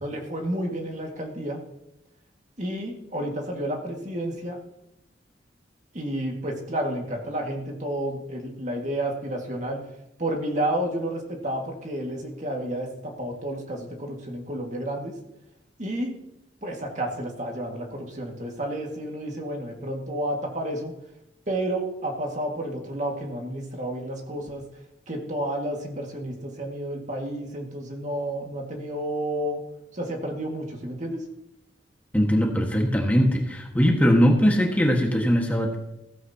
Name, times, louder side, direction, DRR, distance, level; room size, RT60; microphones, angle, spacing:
voice 1, 0.0-1.6 2.6-4.6 5.9-9.8 10.2-15.1 15.8-16.1 16.6-20.9 21.5-24.6 25.1-29.6 29.9-31.2, right 1 dB, 40° right, 1 dB, 1.9 m, -31 dB
voice 2, 32.1-35.8, equal, 10° left, 0 dB, 1.5 m, -20 dB
15.5 x 14.5 x 2.9 m, 0.86 s
head